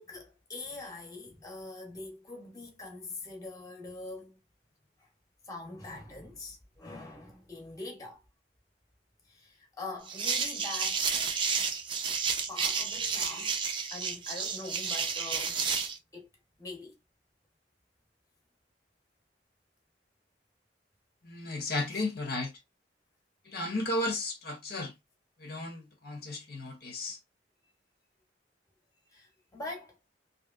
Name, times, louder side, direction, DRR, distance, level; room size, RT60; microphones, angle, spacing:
voice 1, 0.0-4.4 5.0-5.1 5.4-8.2 9.2-11.1 11.6-11.7 12.5-13.6 13.9-15.6 16.1-16.3 16.6-17.0 21.9-22.0 29.1-30.0, left 2 dB, 20° left, 0.9 m, -43 dB
sound 1, 10.1-16.0, right 5 dB, 30° right, 0.5 m, -31 dB
voice 2, 21.2-22.5 23.5-24.9 25.4-27.2, left 2 dB, 60° left, 0.8 m, -34 dB
2.8 x 2.8 x 2.4 m
head